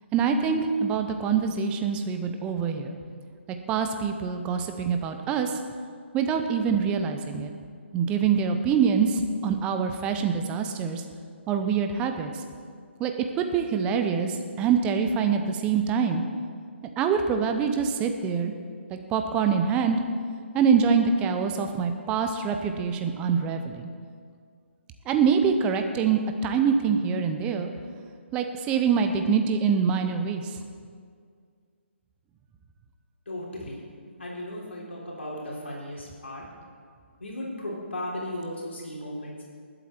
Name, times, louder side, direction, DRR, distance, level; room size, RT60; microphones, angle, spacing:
voice 1, 0.1-3.0 3.7-5.6 6.1-7.5 7.9-11.0 11.5-12.3 13.0-13.1 13.4-16.2 17.0-18.5 18.9-20.0 20.5-23.9 25.1-27.7 28.3-30.6, right 6 dB, 15° right, 6 dB, 0.7 m, -25 dB
voice 2, 33.2-36.4 37.2-39.4, left 1 dB, 65° left, -4 dB, 3.4 m, -36 dB
20.0 x 8.0 x 4.4 m, 2.1 s
figure-of-eight pair, 140°, 7 cm